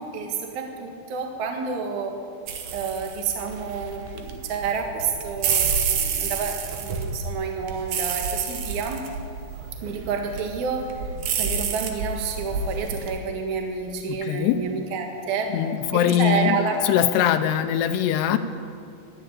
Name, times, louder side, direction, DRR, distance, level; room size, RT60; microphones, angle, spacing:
voice 1, 0.0-2.2 2.7-9.0 9.8-10.9 11.4-15.5 15.9-16.9, right 5 dB, 55° right, 3 dB, 2.4 m, -29 dB
sound 1, 2.5-13.2, right 6 dB, 80° right, 1.7 m, -29 dB
voice 2, 14.1-14.6 15.5-16.6 16.8-18.4, left 10 dB, 80° left, 10 dB, 2.6 m, -22 dB
13.0 x 10.5 x 9.2 m, 2.4 s
omnidirectional pair, 5.1 m